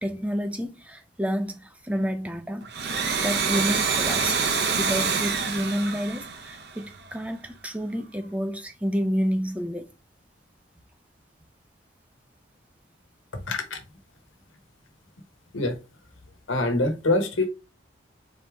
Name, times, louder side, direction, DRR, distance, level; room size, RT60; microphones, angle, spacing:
voice 1, 0.0-4.4 4.7-9.9, equal, 5° right, 0.5 m, -29 dB
Domestic sounds home sounds, 2.6-7.1, right 5 dB, 60° right, 0.7 m, -26 dB
voice 2, 13.5-13.8 15.5-15.8 16.5-17.5, left 2 dB, 85° left, 1.0 m, -24 dB
4.0 x 3.4 x 3.4 m
head